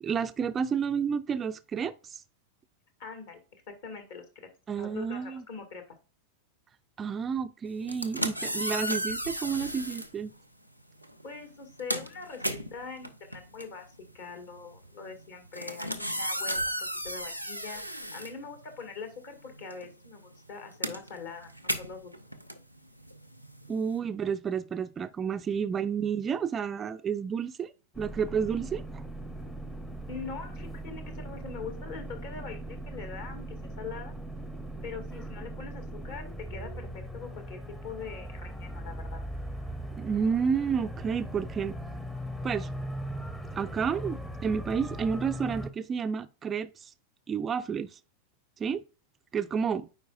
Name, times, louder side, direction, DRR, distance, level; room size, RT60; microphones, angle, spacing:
voice 1, 0.0-2.2 4.7-5.4 7.0-10.3 23.7-29.0 40.0-41.7 42.4-42.7 43.5-46.9 47.3-48.0 48.6-48.8 49.3-49.9, right 6 dB, 20° right, 0.3 m, -30 dB
voice 2, 3.0-3.4 3.7-4.3 4.7-5.8 11.2-13.9 14.1-17.8 18.1-22.1 30.1-34.1 34.8-39.2, left 5 dB, 55° left, 1.8 m, -43 dB
sound 1, 7.8-10.1 11.0-11.2 11.5-19.0 19.3-24.0, equal, 90° left, 0.6 m, -35 dB
sound 2, 27.9-45.7, right 1 dB, 5° left, 0.7 m, -39 dB
9.3 x 4.5 x 2.4 m
figure-of-eight pair, 90°, 0 cm